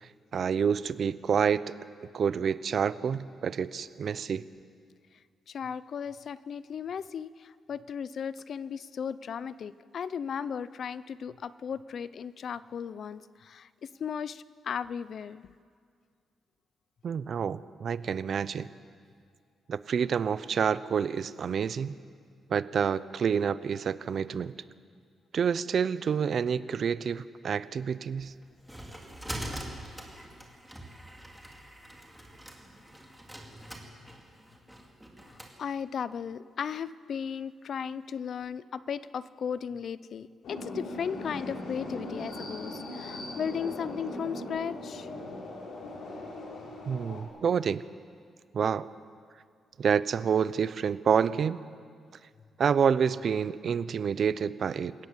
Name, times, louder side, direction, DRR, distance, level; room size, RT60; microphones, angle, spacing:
voice 1, 0.0-1.6 2.1-4.4 17.0-18.7 19.7-21.9 22.5-24.5 25.3-28.3 46.9-47.8 48.5-48.9 49.8-51.6 52.6-54.9, right 7 dB, 50° right, 16 dB, 0.6 m, -28 dB
voice 2, 5.5-15.5 35.3-45.1, left 7 dB, 55° left, 17 dB, 0.6 m, -36 dB
sound 1, 28.2-35.5, right 1 dB, ahead, 2.7 m, -43 dB
sound 2, 40.4-47.2, left 2 dB, 70° left, 5.8 m, -39 dB
27.5 x 17.5 x 7.4 m, 2.1 s
cardioid pair, 140°, 0 cm